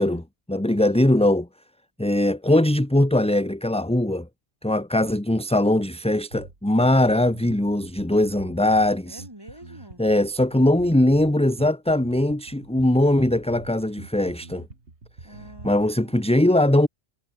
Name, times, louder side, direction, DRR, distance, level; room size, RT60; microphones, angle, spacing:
voice 1, 0.0-1.5 2.0-4.3 4.6-9.2 10.0-14.6 15.6-16.9, left 1 dB, 5° left, 1.4 m, -21 dB
Bass guitar, 6.3-15.9, right 3 dB, 80° right, 3.5 m, -45 dB
voice 2, 9.0-10.0 15.2-16.7, right 1 dB, 20° right, 4.7 m, -47 dB
omnidirectional pair, 1.1 m